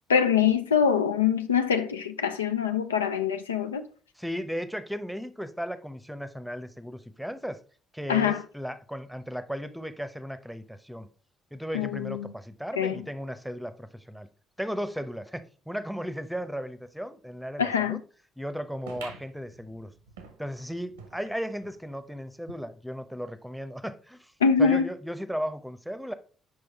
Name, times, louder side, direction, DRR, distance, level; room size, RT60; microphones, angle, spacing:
voice 1, 0.1-3.8 8.1-8.4 11.7-12.3 12.8-13.0 17.6-18.0 24.4-24.9, left 7 dB, 85° left, 0.3 m, -24 dB
voice 2, 4.2-7.6 7.9-11.1 11.5-14.3 14.6-18.0 18.4-19.9 20.4-24.3 24.6-26.1, equal, ahead, 0.8 m, -35 dB
sound 1, 18.9-21.8 22.3-22.4 22.6-22.7 23.4-23.5, right 5 dB, 80° right, 0.8 m, -48 dB
6.3 x 4.9 x 3.5 m
figure-of-eight pair, 45°, 0 cm